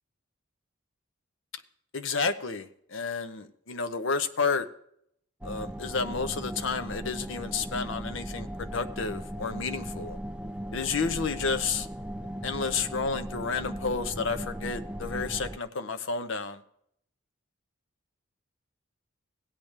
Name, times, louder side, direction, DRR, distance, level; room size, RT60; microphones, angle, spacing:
voice 1, 1.9-4.7 5.4-10.2 10.7-11.9 12.4-16.6, left 4 dB, 65° left, 9 dB, 0.7 m, -31 dB
sound 1, 5.4-15.6, equal, 5° right, 0.3 m, -38 dB
16.5 x 8.8 x 3.3 m, 0.69 s
head